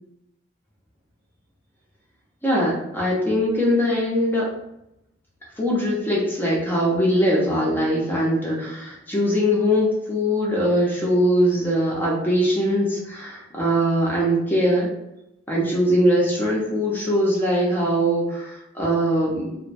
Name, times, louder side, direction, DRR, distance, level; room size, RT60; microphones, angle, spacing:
voice 1, 2.4-4.4 5.6-14.9 15.5-19.6, equal, 10° left, -5 dB, 0.6 m, -21 dB
2.5 x 2.1 x 2.5 m, 0.87 s
head